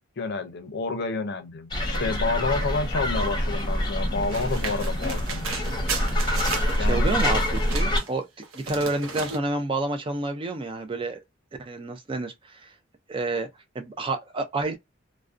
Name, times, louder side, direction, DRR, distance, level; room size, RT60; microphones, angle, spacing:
voice 1, 0.2-5.7 6.8-7.2, left 3 dB, 55° left, 0.5 m, -29 dB
sound 1, 1.7-8.0, equal, 20° left, 0.8 m, -26 dB
sound 2, 4.3-8.1 8.4-9.4, right 4 dB, 85° right, 0.6 m, -34 dB
voice 2, 6.8-8.3 8.5-11.2 11.6-12.7 13.1-13.5 13.7-14.8, right 2 dB, 25° right, 0.3 m, -29 dB
2.4 x 2.1 x 2.4 m
head